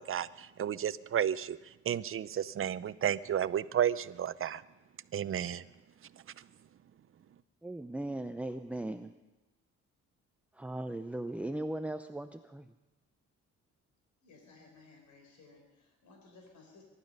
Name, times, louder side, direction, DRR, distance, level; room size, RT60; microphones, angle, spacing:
voice 1, 0.0-4.6 5.1-5.6 6.4-6.5, right 10 dB, 45° right, 16 dB, 0.7 m, -32 dB
voice 2, 7.6-9.1 10.6-12.7, right 1 dB, 5° right, 8 dB, 0.6 m, -38 dB
voice 3, 14.2-16.8, left 3 dB, 70° left, 2 dB, 4.3 m, -58 dB
23.0 x 11.5 x 5.4 m, 1.0 s
cardioid pair, 90°, 30 cm